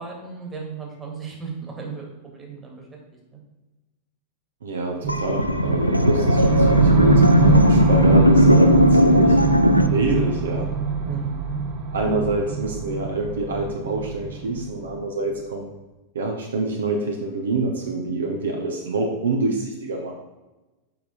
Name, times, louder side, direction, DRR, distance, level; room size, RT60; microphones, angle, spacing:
voice 1, 0.0-2.1 2.3-2.8 11.1-11.4, right 5 dB, 15° right, 0 dB, 1.9 m, -35 dB
voice 2, 4.6-9.4 9.9-10.7 11.0-11.2 11.9-15.7 16.1-20.2, right 2 dB, 65° right, 2 dB, 0.8 m, -26 dB
sound 1, 5.0-15.1, right 5 dB, 35° right, 0.9 m, -23 dB
sound 2, 5.1-9.9, left 1 dB, 90° left, 0.4 m, -17 dB
6.9 x 5.3 x 4.0 m, 1.1 s
figure-of-eight pair, 90°, 0 cm